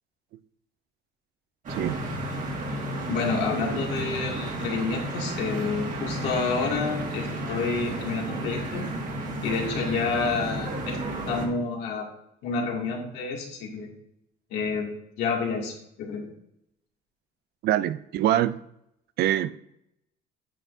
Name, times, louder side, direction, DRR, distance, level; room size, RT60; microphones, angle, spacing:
sound 1, 1.6-11.5, right 1 dB, 50° right, 2.0 m, -32 dB
voice 1, 3.1-8.9 9.4-11.0 11.3-12.1 12.4-13.9 14.5-14.9 15.2-16.3, left 4 dB, 85° left, -2 dB, 2.4 m, -29 dB
voice 2, 17.6-18.6 19.2-19.6, right 12 dB, 70° right, 15 dB, 0.5 m, -24 dB
8.9 x 8.4 x 2.7 m, 0.77 s
cardioid pair, 110°, 17 cm